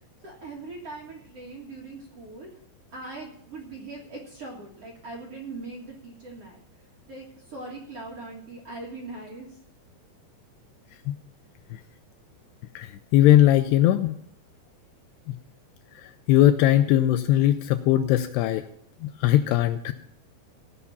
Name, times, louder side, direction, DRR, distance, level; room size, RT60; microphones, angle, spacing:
voice 1, 0.2-2.5 2.9-6.6 7.1-9.6, right 3 dB, 50° right, -1 dB, 1.9 m, -40 dB
voice 2, 12.8-14.2 16.3-18.6 19.0-19.9, left 13 dB, 80° left, 9 dB, 2.4 m, -20 dB
16.5 x 5.6 x 7.1 m, 0.68 s
omnidirectional pair, 5.1 m